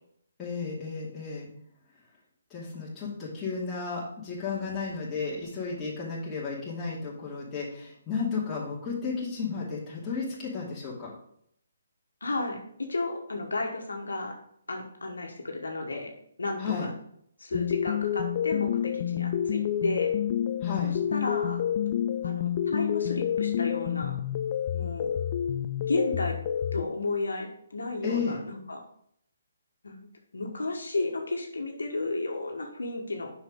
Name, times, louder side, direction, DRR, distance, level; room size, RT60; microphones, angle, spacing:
voice 1, 0.4-1.5 2.5-11.1 16.6-16.9 20.6-20.9 28.0-28.4, left 5 dB, 15° left, -8 dB, 2.5 m, -33 dB
voice 2, 12.2-14.4 14.7-16.1 16.4-16.9 17.4-20.1 20.8-21.6 22.2-24.2 24.7-25.1 25.9-26.4 26.7-28.8 29.8-30.0 30.3-33.3, left 2 dB, 80° left, 2 dB, 1.3 m, -33 dB
sound 1, 17.5-26.8, left 9 dB, 40° left, 0.4 m, -29 dB
7.0 x 5.6 x 3.7 m, 0.69 s
figure-of-eight pair, 145°, 0 cm